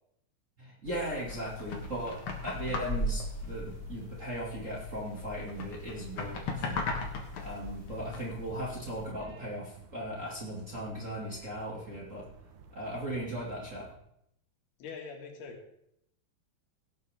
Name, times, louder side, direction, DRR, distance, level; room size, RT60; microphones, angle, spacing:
voice 1, 0.6-6.8 7.4-12.3 12.7-13.9, right 1 dB, 25° right, -4 dB, 2.0 m, -38 dB
sound 1, 0.8-9.1, left 2 dB, 50° left, 1.6 m, -38 dB
sound 2, 1.8-14.0, right 4 dB, 70° right, 2.8 m, -54 dB
voice 2, 14.8-15.8, left 5 dB, 85° left, 2 dB, 3.9 m, -44 dB
17.5 x 8.5 x 3.6 m, 0.75 s
omnidirectional pair, 4.4 m